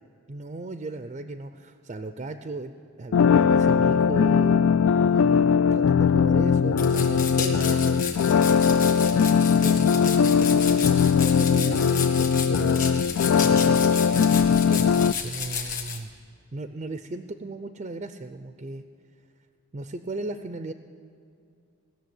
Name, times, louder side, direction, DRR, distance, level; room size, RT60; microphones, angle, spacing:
voice 1, 0.3-4.8 5.1-8.0 9.5-13.1 13.4-16.1 16.5-18.8 19.7-20.7, right 2 dB, 30° right, 9 dB, 0.4 m, -36 dB
sound 1, 3.1-15.1, left 6 dB, 70° left, 0.3 m, -20 dB
sound 2, 6.8-16.0, left 6 dB, 40° left, 1.6 m, -33 dB
18.0 x 6.8 x 9.2 m, 2.5 s
head